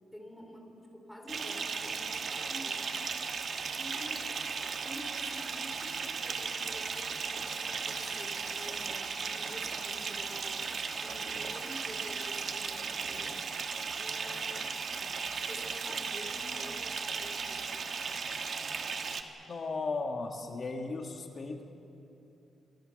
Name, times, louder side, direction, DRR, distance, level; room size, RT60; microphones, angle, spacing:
voice 1, 0.1-3.1 3.8-4.4 4.8-10.6 11.0-13.4 14.0-17.9, left 1 dB, 5° left, 2 dB, 3.4 m, -49 dB
Bathtub (filling or washing) / Fill (with liquid), 1.3-19.2, right 5 dB, 45° right, 1.4 m, -36 dB
sound 1, 6.0-9.0 9.5-14.3 14.6-16.4, right 3 dB, 25° right, 2.9 m, -56 dB
voice 2, 19.5-21.6, left 3 dB, 35° left, 3 dB, 1.6 m, -36 dB
28.0 x 21.5 x 6.4 m, 2.9 s
wide cardioid pair, 170°, 0 cm